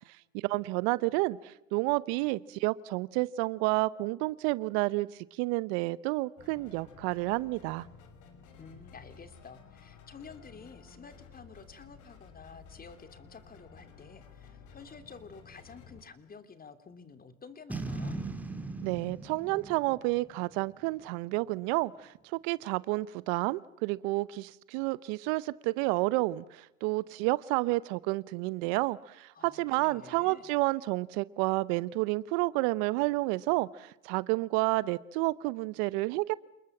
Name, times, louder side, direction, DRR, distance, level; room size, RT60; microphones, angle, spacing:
voice 1, 0.3-7.9 18.8-36.3, right 21 dB, 60° right, 0.9 m, -30 dB
sound 1, 6.4-16.0, left 5 dB, 50° left, 5.9 m, -54 dB
voice 2, 8.6-18.2 29.3-30.5, left 5 dB, 25° left, 2.9 m, -51 dB
Boom, 17.7-21.0, right 3 dB, 5° right, 2.8 m, -39 dB
29.0 x 20.5 x 7.3 m
hypercardioid pair, 95°, 38 cm